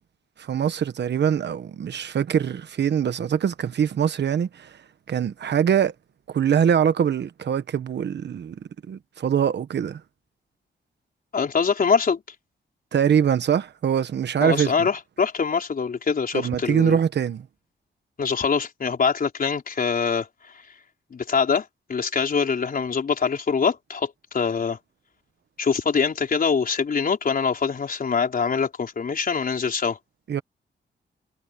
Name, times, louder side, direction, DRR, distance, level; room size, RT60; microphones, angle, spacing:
voice 1, 0.4-4.7 5.1-5.9 6.3-8.6 8.9-10.0 12.9-14.9 16.3-17.5 30.3-30.4, right 8 dB, 65° right, 1.2 m, -23 dB
voice 2, 11.3-12.2 14.4-17.0 18.2-20.3 21.1-24.8 25.6-30.0, left 5 dB, 50° left, 4.4 m, -24 dB
wide cardioid pair, 120°, 19 cm